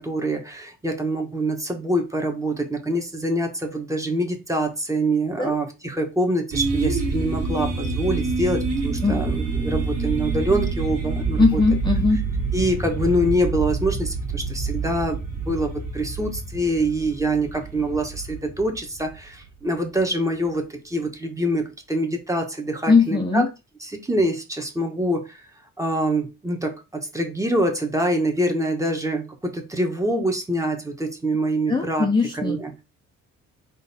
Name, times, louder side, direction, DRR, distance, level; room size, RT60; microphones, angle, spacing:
voice 1, 0.0-11.6 12.5-23.5 23.8-25.4 25.8-32.1 32.3-32.7, right 1 dB, 10° right, 1.2 m, -25 dB
sound 1, 6.5-19.4, right 4 dB, 55° right, 1.8 m, -27 dB
voice 2, 11.4-12.2 22.9-23.5 31.7-32.6, left 4 dB, 15° left, 0.7 m, -19 dB
3.9 x 2.7 x 4.1 m
cardioid pair, 90°, 30 cm